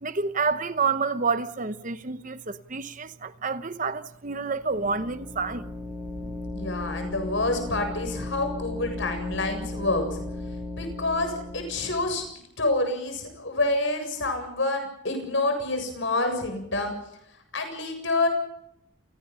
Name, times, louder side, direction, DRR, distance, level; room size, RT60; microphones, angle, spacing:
voice 1, 0.0-5.7, right 4 dB, 40° right, 0.9 m, -28 dB
sound 1, 4.6-12.3, left 2 dB, ahead, 2.7 m, -36 dB
voice 2, 6.5-10.2 10.7-12.2 12.6-17.0 17.5-18.3, left 2 dB, 60° left, 7.5 m, -27 dB
29.0 x 19.5 x 5.6 m
head